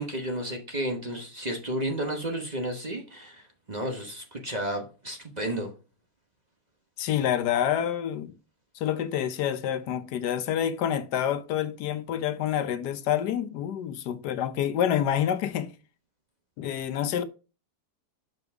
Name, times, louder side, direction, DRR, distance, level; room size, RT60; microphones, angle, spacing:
voice 1, 0.0-5.7, right 1 dB, 30° right, 1.0 m, -32 dB
voice 2, 7.0-8.3 8.7-15.7 16.6-17.2, left 10 dB, 80° left, 1.3 m, -27 dB
6.8 x 5.3 x 3.5 m
omnidirectional pair, 1.8 m